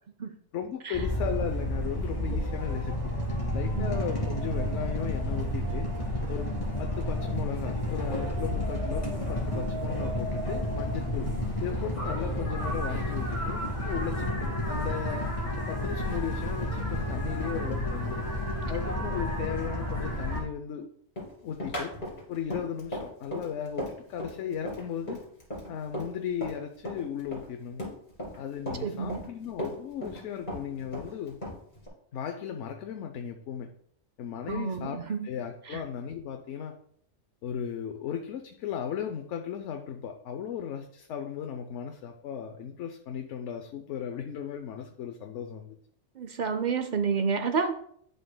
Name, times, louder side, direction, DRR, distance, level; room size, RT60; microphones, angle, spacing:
voice 1, 0.5-3.1 3.5-5.9 6.3-6.5 6.8-11.3 11.6-15.2 15.5-18.2 18.7-20.9 21.4-21.9 22.3-25.2 25.7-27.8 28.4-31.4 32.1-33.7 34.2-36.7 37.4-45.8, left 8 dB, 80° left, 5 dB, 0.9 m, -36 dB
sound 1, 0.9-20.4, left 1 dB, 25° left, 2.0 m, -31 dB
Run, 21.2-26.6 26.8-28.4 28.7-30.2 30.5-31.9, equal, 45° left, 3.0 m, -36 dB
voice 2, 28.8-29.2 34.5-35.3 35.7-35.8 46.2-47.7, right 5 dB, 60° right, 9 dB, 0.5 m, -30 dB
11.0 x 5.4 x 2.2 m, 0.65 s
omnidirectional pair, 1.2 m